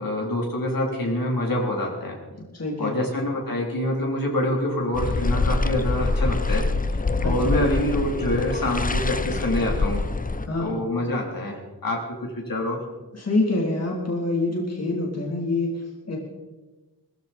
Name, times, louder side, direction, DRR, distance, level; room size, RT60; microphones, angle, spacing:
voice 1, 0.0-2.2 2.8-6.7 6.9-10.0 10.6-12.8, left 1 dB, 55° left, -1 dB, 3.5 m, -26 dB
voice 2, 2.5-3.1 7.2-7.5 10.4-10.8 13.1-16.2, left 2 dB, 40° left, -2 dB, 3.3 m, -26 dB
sound 1, 4.9-10.5, left 3 dB, 20° left, 0.7 m, -25 dB
20.0 x 14.5 x 4.3 m, 1.2 s
wide cardioid pair, 120°, 41 cm